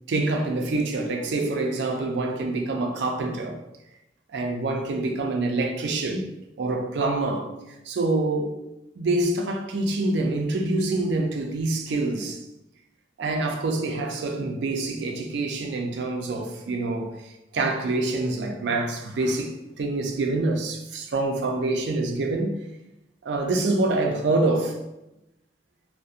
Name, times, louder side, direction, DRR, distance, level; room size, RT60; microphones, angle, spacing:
voice 1, 0.1-3.6 4.3-6.3 6.6-7.5 7.9-8.6 9.0-12.4 13.2-22.5 23.2-24.8, right 2 dB, 70° right, 0.4 m, -26 dB
2.6 x 2.1 x 2.4 m
head